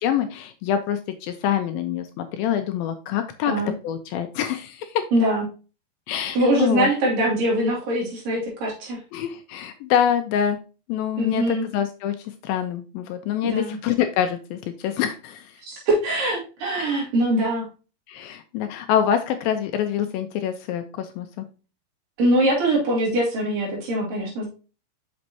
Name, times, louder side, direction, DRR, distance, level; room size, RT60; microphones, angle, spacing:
voice 1, 0.0-3.5 3.8-5.0 6.1-6.9 9.1-10.6 10.9-12.2 12.4-15.5 18.1-21.5, left 9 dB, 80° left, 8 dB, 2.2 m, -25 dB
voice 2, 5.1-5.4 6.4-9.0 11.2-11.7 13.4-13.8 15.6-17.7 22.2-24.5, right 1 dB, 60° right, -2 dB, 3.8 m, -22 dB
6.3 x 6.1 x 2.8 m, 0.34 s
omnidirectional pair, 4.5 m